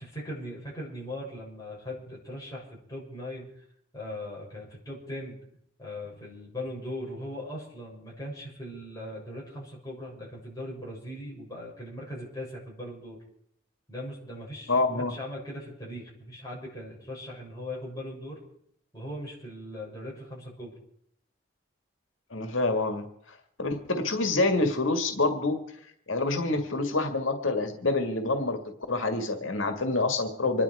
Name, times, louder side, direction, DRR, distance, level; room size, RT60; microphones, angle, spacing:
voice 1, 0.0-3.6 3.9-5.4 5.8-13.2 13.9-18.4 18.9-20.7, left 1 dB, 20° left, -5 dB, 6.9 m, -39 dB
voice 2, 14.7-15.1 22.3-25.6 26.1-28.6 28.9-30.6, left 2 dB, 90° left, 6 dB, 1.9 m, -27 dB
26.0 x 11.0 x 4.8 m, 0.69 s
head